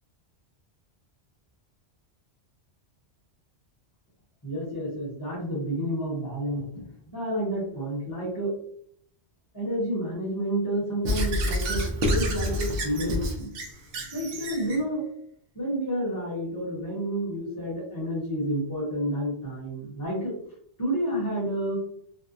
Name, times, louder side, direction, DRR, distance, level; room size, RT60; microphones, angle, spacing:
voice 1, 4.4-6.9 7.1-8.5 9.5-13.5 14.1-15.0 15.5-20.3 20.8-21.8, right 1 dB, 25° left, -7 dB, 0.8 m, -30 dB
Squeak / Writing, 11.0-14.8, equal, 65° right, 0.7 m, -28 dB
2.6 x 2.1 x 2.5 m, 0.67 s
omnidirectional pair, 1.1 m